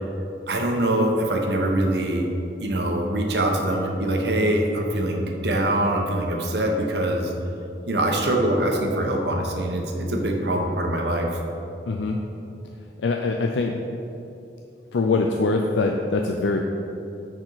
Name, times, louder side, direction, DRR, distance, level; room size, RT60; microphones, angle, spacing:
voice 1, 0.5-2.3 2.6-7.3 7.9-11.3, right 1 dB, 70° right, 2 dB, 1.0 m, -23 dB
voice 2, 11.9-12.2 13.0-13.7 14.9-16.6, left 3 dB, 90° left, 2 dB, 0.4 m, -23 dB
10.5 x 4.4 x 4.0 m, 2.8 s
head